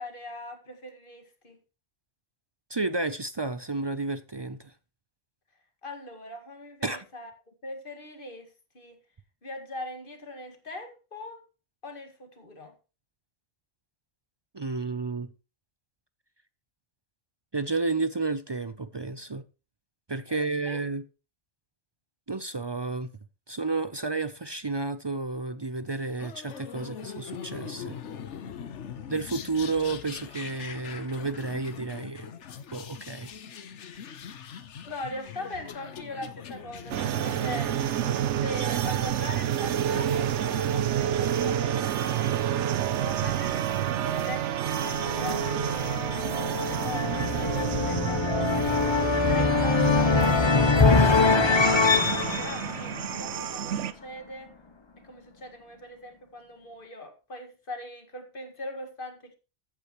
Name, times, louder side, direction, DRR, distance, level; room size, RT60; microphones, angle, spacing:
voice 1, 0.0-1.6 5.8-7.3 7.6-9.0 9.4-11.4 11.8-12.7 20.3-20.8 34.9-37.8 38.4-42.7 43.0-44.7 45.0-46.2 46.6-48.8 49.1-54.5 55.0-59.4, left 1 dB, 50° left, 2.1 m, -41 dB
voice 2, 2.7-4.7 6.8-7.0 14.5-15.3 17.5-19.4 20.1-21.0 22.3-23.1 23.5-28.0 29.1-32.3 32.7-33.3, right 3 dB, 35° right, 0.4 m, -31 dB
sound 1, 26.2-38.9, left 8 dB, 80° left, 1.2 m, -42 dB
sound 2, 36.9-53.9, right 10 dB, 80° right, 1.0 m, -29 dB
sound 3, 44.7-53.7, left 4 dB, 25° left, 0.7 m, -24 dB
14.5 x 8.5 x 3.0 m
omnidirectional pair, 1.2 m